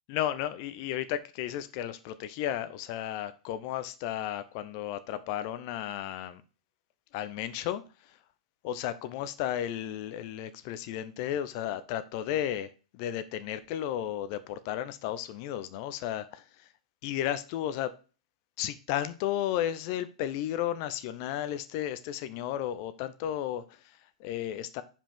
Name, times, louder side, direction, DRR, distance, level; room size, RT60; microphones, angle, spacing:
voice 1, 0.1-6.4 7.1-7.8 8.6-16.4 17.0-17.9 18.6-24.8, left 11 dB, 45° left, 0.6 m, -33 dB
5.4 x 5.0 x 5.1 m
figure-of-eight pair, 105°, 3 cm